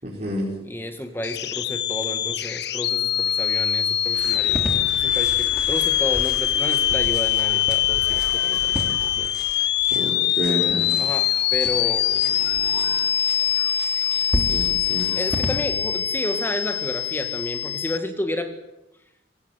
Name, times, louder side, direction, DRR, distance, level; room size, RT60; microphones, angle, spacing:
voice 1, 0.0-0.5 9.9-11.0 14.3-15.1, equal, 35° right, -4 dB, 4.9 m, -29 dB
voice 2, 0.6-9.3 11.0-13.1 15.2-18.5, left 1 dB, 10° left, 7 dB, 1.7 m, -31 dB
sound 1, 1.2-18.0, left 11 dB, 60° left, 1.2 m, -23 dB
sound 2, 4.1-15.6, equal, 5° right, 3.2 m, -34 dB
24.0 x 17.5 x 9.3 m, 0.89 s
head